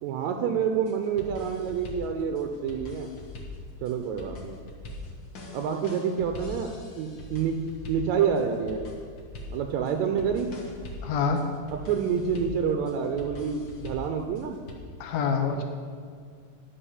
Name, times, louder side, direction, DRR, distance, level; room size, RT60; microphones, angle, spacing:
voice 1, 0.0-3.1 3.8-4.6 5.5-7.6 7.9-8.8 9.5-10.5 11.9-14.6 15.6-15.7, right 7 dB, 80° right, 5 dB, 1.9 m, -28 dB
sound 1, 0.7-14.7, left 2 dB, 50° left, 1.6 m, -42 dB
voice 2, 11.0-11.5 15.0-15.6, left 5 dB, 70° left, 4 dB, 2.1 m, -26 dB
11.5 x 5.3 x 7.2 m, 2.1 s
omnidirectional pair, 3.4 m